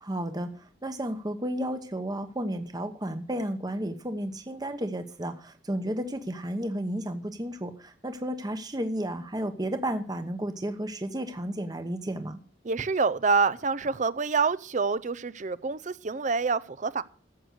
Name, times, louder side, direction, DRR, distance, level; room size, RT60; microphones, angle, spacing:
voice 1, 0.0-0.5 0.8-12.4, right 1 dB, 20° right, 1.0 m, -32 dB
voice 2, 12.6-17.0, right 4 dB, 45° right, 0.6 m, -27 dB
14.5 x 8.0 x 6.4 m
head